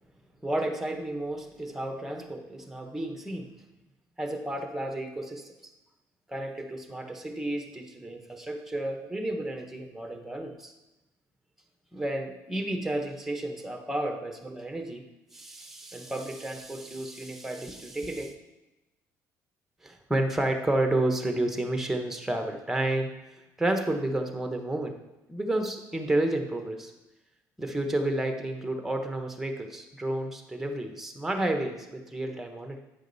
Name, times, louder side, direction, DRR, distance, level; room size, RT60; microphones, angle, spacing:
voice 1, 0.4-3.5 4.2-5.5 6.3-10.7 11.9-15.0 15.3-18.3 19.8-25.0 25.3-26.9 27.6-32.8, right 1 dB, 5° right, 4 dB, 1.1 m, -31 dB
8.6 x 5.0 x 4.1 m, 1.0 s
cardioid pair, 105°, 7 cm